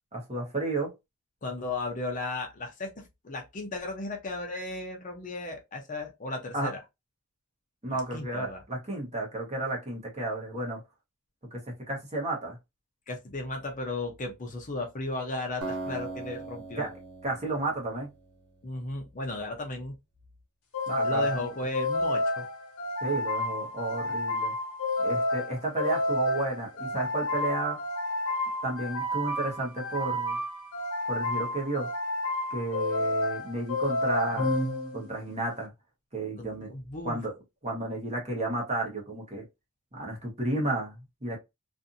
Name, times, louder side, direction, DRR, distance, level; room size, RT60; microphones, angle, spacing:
voice 1, 0.1-0.9 6.5-6.7 7.8-10.8 11.5-12.6 16.8-16.9 17.2-18.1 20.9-21.4 23.0-24.5 25.0-27.8 28.6-30.4 31.1-31.9 32.5-34.6 34.9-35.7 36.1-36.7 37.0-37.3 37.6-39.4 39.9-41.4, right 2 dB, 30° right, 1.1 m, -32 dB
voice 2, 1.4-6.8 7.9-8.6 13.1-16.9 18.6-19.9 21.0-22.5 36.4-37.2, left 2 dB, 35° left, 0.7 m, -35 dB
Acoustic guitar, 15.6-18.8, right 3 dB, 85° right, 0.9 m, -40 dB
sound 1, 20.7-35.3, left 1 dB, 75° left, 1.0 m, -30 dB
2.6 x 2.6 x 2.6 m
head